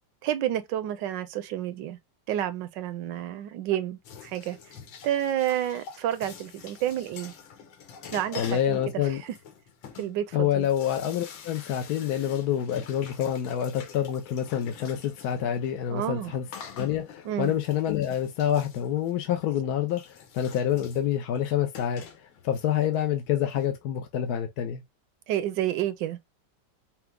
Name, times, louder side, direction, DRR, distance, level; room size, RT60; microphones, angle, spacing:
voice 1, 0.2-2.0 2.3-4.6 5.0-7.3 8.1-9.3 10.0-10.7 15.9-16.3 17.2-17.5 25.3-26.2, right 12 dB, 75° right, 1.2 m, -30 dB
sound 1, 4.0-23.7, left 7 dB, 90° left, 1.6 m, -46 dB
voice 2, 8.4-9.2 10.3-16.5 16.7-24.8, left 10 dB, 65° left, 1.1 m, -27 dB
5.7 x 2.0 x 3.7 m
omnidirectional pair, 2.0 m